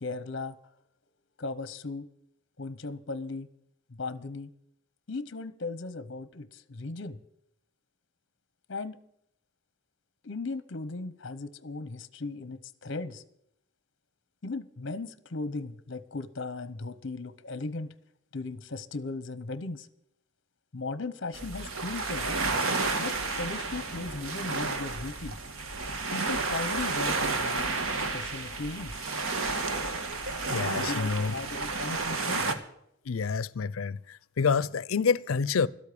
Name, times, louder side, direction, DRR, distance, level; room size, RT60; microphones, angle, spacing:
voice 1, 0.0-0.6 1.4-2.1 2.6-3.5 3.9-4.5 5.1-7.2 8.7-9.0 10.2-13.2 14.4-17.9 18.3-19.9 20.7-22.4 23.0-25.4 26.1-27.7 28.0-29.0 30.8-32.4, left 3 dB, 60° left, 0.8 m, -37 dB
sound 1, 21.3-32.5, right 3 dB, 85° right, 1.4 m, -31 dB
voice 2, 30.5-31.3 33.1-35.7, left 5 dB, 85° left, 0.5 m, -28 dB
12.5 x 8.4 x 8.4 m
head